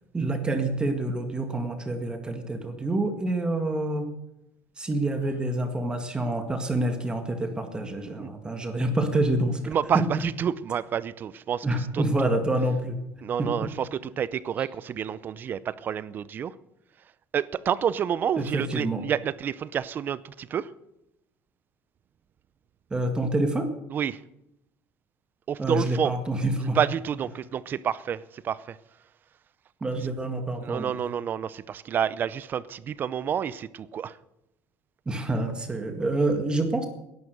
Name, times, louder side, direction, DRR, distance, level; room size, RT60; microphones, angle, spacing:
voice 1, 0.1-4.1 4.8-10.0 11.6-13.0 13.4-13.5 18.4-19.1 22.9-23.7 25.6-26.8 29.8-30.9 35.1-36.9, right 2 dB, 15° right, 1.8 m, -27 dB
voice 2, 9.7-11.7 11.9-12.0 13.2-16.5 17.3-20.7 23.9-24.2 25.5-26.1 26.6-28.8 30.6-34.2, right 8 dB, 40° right, 0.6 m, -29 dB
18.0 x 11.0 x 6.7 m
cardioid pair, 130°, 5 cm